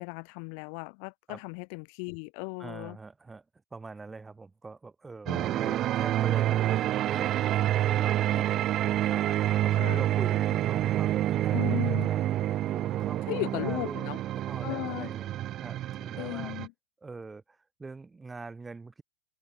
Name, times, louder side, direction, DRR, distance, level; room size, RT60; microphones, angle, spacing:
voice 1, 0.0-3.0 5.3-5.8 9.7-10.1 11.5-12.1 13.3-14.2 14.6-15.1 16.2-16.7, left 40 dB or more, 60° left, 0.3 m, -36 dB
voice 2, 2.6-3.4 3.7-7.4 7.7-8.6 9.0-14.0 14.4-15.3 15.6-16.5 17.0-19.0, right 4 dB, 15° right, 0.9 m, -43 dB
sound 1, 5.3-16.7, right 13 dB, 40° right, 0.3 m, -28 dB
hypercardioid pair, 110°, 0 cm